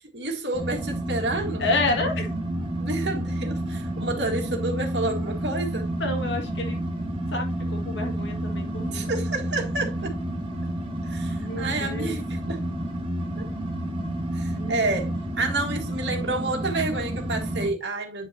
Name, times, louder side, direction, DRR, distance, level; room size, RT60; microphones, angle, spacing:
voice 1, 0.1-1.7 2.8-5.9 8.9-10.2 11.1-12.6 13.4-13.5 14.3-18.3, right 2 dB, 70° right, 1.9 m, -29 dB
sound 1, 0.5-17.7, right 1 dB, 30° right, 1.8 m, -30 dB
voice 2, 1.6-2.3 6.0-6.8 7.3-9.1 11.4-12.2 14.6-14.9, left 2 dB, 80° left, 2.0 m, -29 dB
9.0 x 5.7 x 2.9 m
head